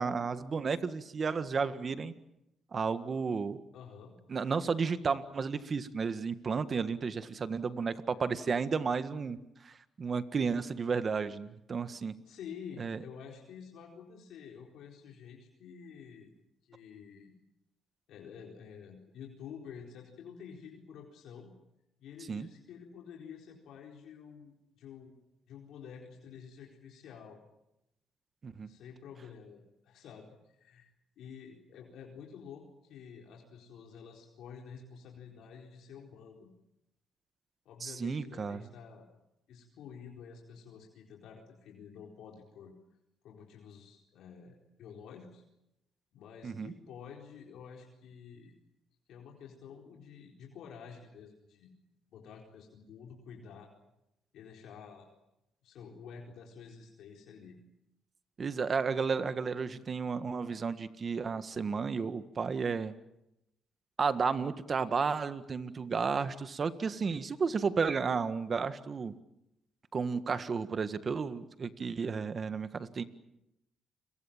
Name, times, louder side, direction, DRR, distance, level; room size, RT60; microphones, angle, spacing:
voice 1, 0.0-2.1 2.7-3.6 4.3-9.4 9.6-12.1 12.8-13.0 22.3-22.5 28.4-28.7 37.8-38.6 46.4-46.7 58.4-62.9 64.0-69.2 69.9-73.0, right 5 dB, 40° right, 12 dB, 1.7 m, -32 dB
voice 2, 3.7-4.2 12.3-16.3 16.6-17.3 18.1-21.5 22.0-25.2 25.5-27.4 28.7-30.9 31.2-36.5 37.6-39.1 39.5-42.8 43.2-45.4 46.1-48.5 49.1-51.7 52.1-53.7 54.3-55.1 55.6-57.6, left 7 dB, 80° left, 0 dB, 4.3 m, -49 dB
29.5 x 23.0 x 7.4 m, 0.87 s
cardioid pair, 90°, 0 cm